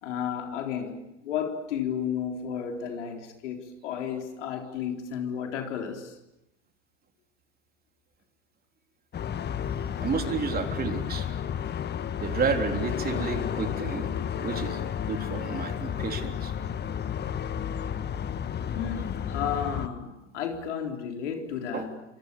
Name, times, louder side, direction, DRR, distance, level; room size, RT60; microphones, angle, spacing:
voice 1, 0.0-6.2 18.7-22.0, left 8 dB, 70° left, 4.2 m, -33 dB
sound 1, 9.1-19.9, left 8 dB, 25° left, 1.6 m, -32 dB
voice 2, 10.0-11.3 12.2-14.1 14.4-14.8 15.1-16.5 21.7-21.9, right 5 dB, 25° right, 3.8 m, -31 dB
30.0 x 25.5 x 7.0 m
hypercardioid pair, 90°, 37 cm